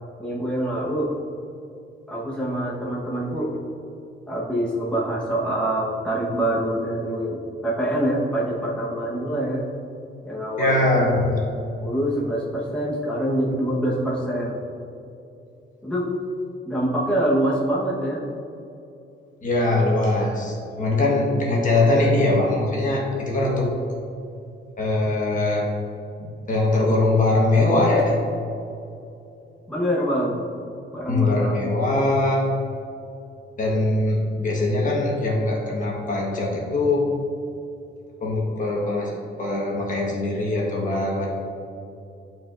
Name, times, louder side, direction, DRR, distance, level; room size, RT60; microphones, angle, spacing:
voice 1, 0.2-1.1 2.1-3.5 4.3-9.7 10.2-11.0 11.8-14.6 15.8-16.1 16.6-18.2 29.7-30.4 30.9-31.6, right 1 dB, 5° left, -7 dB, 1.2 m, -25 dB
voice 2, 10.6-11.4 19.4-23.7 24.8-25.7 26.2-28.1 31.1-32.4 33.6-37.1 38.2-41.3, left 2 dB, 40° left, -3 dB, 1.4 m, -22 dB
11.5 x 4.5 x 2.6 m, 2.7 s
cardioid pair, 135°, 20 cm